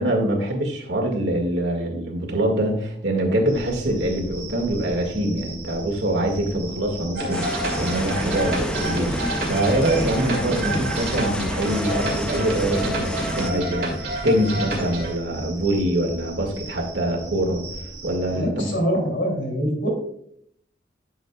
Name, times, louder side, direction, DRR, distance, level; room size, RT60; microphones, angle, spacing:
voice 1, 0.0-17.6 18.0-18.7, right 1 dB, 80° right, 1 dB, 1.9 m, -24 dB
sound 1, 3.5-18.4, right 2 dB, 35° right, 2.4 m, -38 dB
sound 2, 7.2-15.1, right 1 dB, 60° right, 2.3 m, -29 dB
sound 3, 7.3-13.5, left 1 dB, 5° left, 0.3 m, -30 dB
voice 2, 10.2-10.8 18.3-19.9, equal, 85° left, 2 dB, 2.7 m, -25 dB
12.0 x 6.5 x 2.3 m, 0.69 s
head